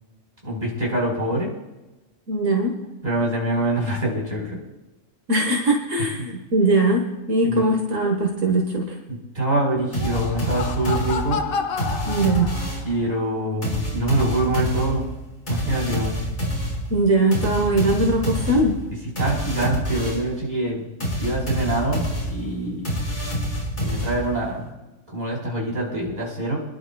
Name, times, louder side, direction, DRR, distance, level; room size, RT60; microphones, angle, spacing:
voice 1, 0.4-1.5 3.0-4.6 7.4-7.7 9.1-11.4 12.8-15.0 15.5-16.1 19.2-20.9 21.2-22.0 22.3-22.9 23.8-24.7 25.1-26.6, right 1 dB, 30° right, -3 dB, 4.3 m, -25 dB
voice 2, 2.3-2.7 5.3-7.0 7.3-8.9 12.1-12.5 16.9-18.7, right 2 dB, 70° right, 1 dB, 1.6 m, -20 dB
Laughter, 9.8-13.0, left 5 dB, 90° left, 1.2 m, -30 dB
sound 1, 9.9-13.0 13.6-20.4 21.0-24.5, equal, 40° left, 5.2 m, -27 dB
29.5 x 11.0 x 2.3 m, 1.1 s
omnidirectional pair, 1.4 m